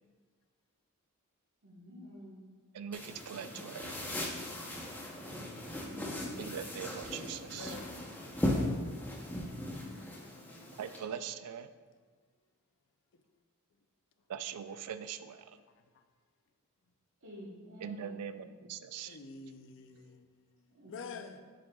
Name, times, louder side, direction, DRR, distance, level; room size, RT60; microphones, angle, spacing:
voice 1, 1.6-2.5 5.8-6.6 9.4-10.1 17.2-18.6 20.7-21.4, equal, 65° right, 1.2 m, -51 dB
voice 2, 2.7-3.9 6.4-7.8 10.8-11.7 14.3-15.6 17.8-19.2, right 8 dB, 90° right, 0.4 m, -42 dB
sound 1, 2.9-11.0, left 1 dB, 10° left, 0.7 m, -38 dB
sound 2, 3.1-11.1, left 1 dB, 30° left, 1.1 m, -56 dB
voice 3, 7.1-8.1 13.1-13.2 15.8-16.0 19.1-21.4, left 4 dB, 60° left, 0.5 m, -49 dB
7.5 x 6.3 x 2.3 m
head